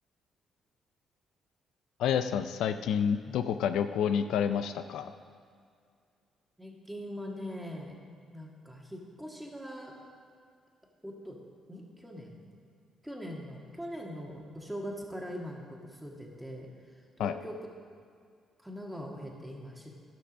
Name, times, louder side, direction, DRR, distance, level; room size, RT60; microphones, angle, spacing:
voice 1, 2.0-5.1 17.2-17.3, left 8 dB, 85° left, 10 dB, 0.4 m, -29 dB
voice 2, 6.6-8.0 8.3-10.0 11.0-11.4 11.7-12.4 13.0-16.7 17.2-17.5 18.6-19.9, equal, 5° right, -1 dB, 1.8 m, -41 dB
11.5 x 6.1 x 6.2 m, 2.2 s
cardioid pair, 90°, 0 cm